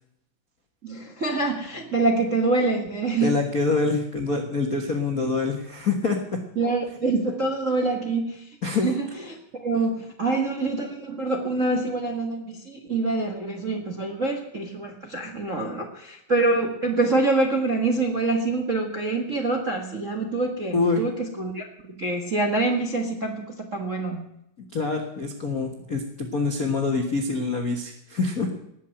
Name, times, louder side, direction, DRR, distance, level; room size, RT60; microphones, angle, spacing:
voice 1, 0.8-3.3 6.6-8.4 8.8-9.1 9.6-24.2, right 3 dB, 40° right, 2 dB, 1.1 m, -25 dB
voice 2, 3.2-6.2 8.6-8.9 20.7-21.0 24.7-28.5, left 3 dB, 50° left, 2 dB, 1.1 m, -25 dB
19.0 x 7.4 x 9.1 m, 0.80 s
omnidirectional pair, 4.0 m